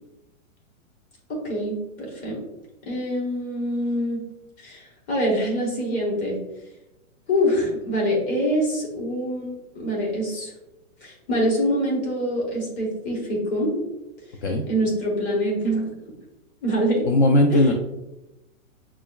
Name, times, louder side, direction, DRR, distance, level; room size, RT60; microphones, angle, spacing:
voice 1, 1.3-2.4 2.8-4.3 4.6-6.4 7.3-10.5 11.0-13.7 14.7-15.8 16.6-17.1 17.5-17.7, equal, 20° left, -2 dB, 0.9 m, -25 dB
voice 2, 17.1-17.7, left 1 dB, 55° left, 3 dB, 0.5 m, -18 dB
6.0 x 2.3 x 2.2 m, 0.93 s
hypercardioid pair, 150°, 41 cm